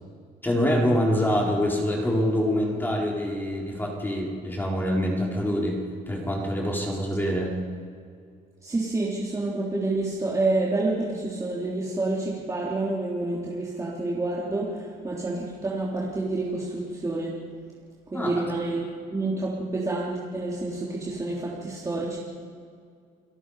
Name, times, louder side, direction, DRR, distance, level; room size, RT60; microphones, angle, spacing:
voice 1, 0.4-5.8 6.1-7.5 18.1-18.3, equal, 10° left, -3 dB, 4.2 m, -25 dB
voice 2, 8.6-17.3 18.1-18.8 19.1-22.2, right 2 dB, 20° right, -6 dB, 3.4 m, -28 dB
29.5 x 17.5 x 5.0 m, 2.2 s
cardioid pair, 110°, 17 cm